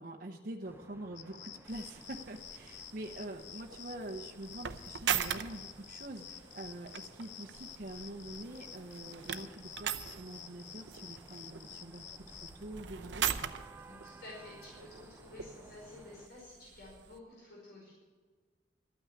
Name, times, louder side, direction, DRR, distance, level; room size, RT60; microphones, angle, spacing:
voice 1, 0.0-13.3, right 1 dB, 50° right, 1 dB, 0.9 m, -45 dB
sound 1, 0.6-16.3, right 2 dB, 15° right, 0.5 m, -58 dB
sound 2, 1.1-12.6, left 9 dB, 90° left, 0.8 m, -51 dB
sound 3, 1.7-17.2, right 8 dB, 90° right, 0.7 m, -42 dB
voice 2, 13.8-17.9, left 2 dB, 65° left, -4 dB, 5.0 m, -51 dB
13.0 x 9.3 x 8.3 m, 1.5 s
head